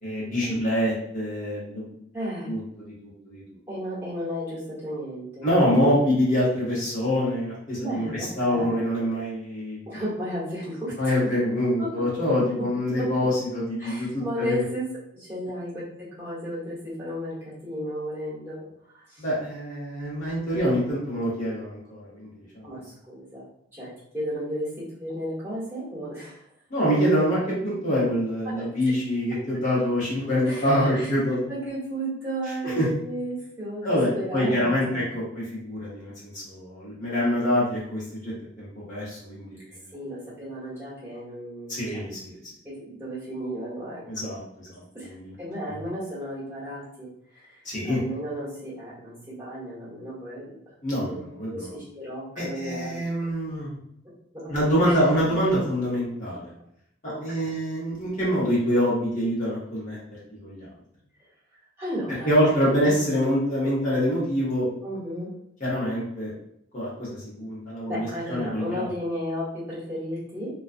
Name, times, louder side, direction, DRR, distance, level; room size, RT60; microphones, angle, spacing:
voice 1, 0.0-2.0 2.5-3.4 5.4-9.8 11.0-14.6 19.2-22.6 26.7-31.5 32.8-32.9 33.8-39.6 41.7-42.4 44.1-44.4 45.0-45.3 45.7-45.8 47.6-48.0 50.8-51.7 52.4-53.8 54.5-56.5 57.2-60.0 60.3-60.7 62.2-64.7 65.6-66.3 66.7-68.9, equal, 40° left, -8 dB, 0.9 m, -25 dB
voice 2, 2.1-2.5 3.7-5.5 7.8-9.1 9.9-11.3 11.8-12.6 13.0-13.1 13.8-19.2 22.6-23.4 23.7-26.4 28.4-28.9 30.4-30.7 30.9-35.1 39.9-42.0 42.6-44.3 44.9-47.6 47.8-50.6 51.1-51.2 51.5-53.0 54.0-55.0 57.1-57.6 61.8-62.5 62.8-63.0 64.8-65.3 67.9-70.5, equal, 10° right, -10 dB, 1.1 m, -34 dB
2.4 x 2.2 x 2.5 m, 0.73 s
head